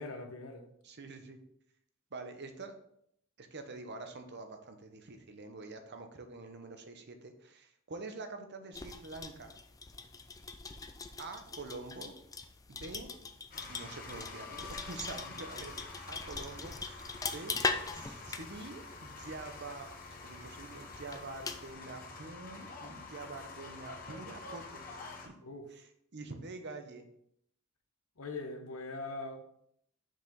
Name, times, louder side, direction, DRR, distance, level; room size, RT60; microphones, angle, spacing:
voice 1, 0.0-0.7 25.4-25.7 28.2-29.5, left 3 dB, 80° left, 5 dB, 1.0 m, -41 dB
voice 2, 0.8-1.4 2.1-2.7 3.4-9.6 11.2-12.1 12.7-13.1 13.7-15.8 16.1-17.5 17.9-24.9 25.2-25.3 25.7-27.0, right 3 dB, 55° right, 7 dB, 0.9 m, -46 dB
sound 1, 8.7-21.7, left 4 dB, 15° left, 0.4 m, -41 dB
sound 2, 13.5-25.3, left 3 dB, 45° left, 1.1 m, -47 dB
6.1 x 4.9 x 3.8 m, 0.71 s
head